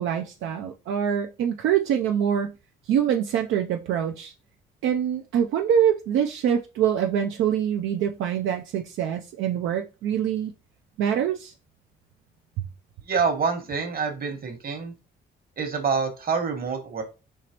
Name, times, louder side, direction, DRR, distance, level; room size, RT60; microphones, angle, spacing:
voice 1, 0.0-2.5 2.9-4.3 4.8-10.5 11.0-11.5, right 9 dB, 80° right, 0.5 m, -24 dB
voice 2, 13.1-14.9 15.6-17.0, right 5 dB, 50° right, 1.2 m, -26 dB
4.6 x 2.9 x 2.9 m
cardioid pair, 90°, 20 cm